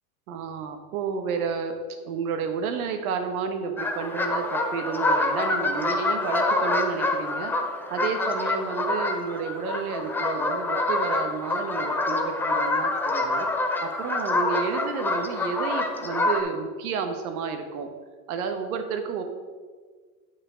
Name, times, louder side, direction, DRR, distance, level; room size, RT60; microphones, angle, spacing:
voice 1, 0.3-1.8 2.0-7.5 7.9-13.5 13.8-17.9 18.3-19.2, right 6 dB, 75° right, 6 dB, 1.4 m, -31 dB
sound 1, 3.8-16.4, left 2 dB, 5° left, 0.4 m, -26 dB
9.6 x 5.6 x 5.1 m, 1.5 s
supercardioid pair, 130°, 43 cm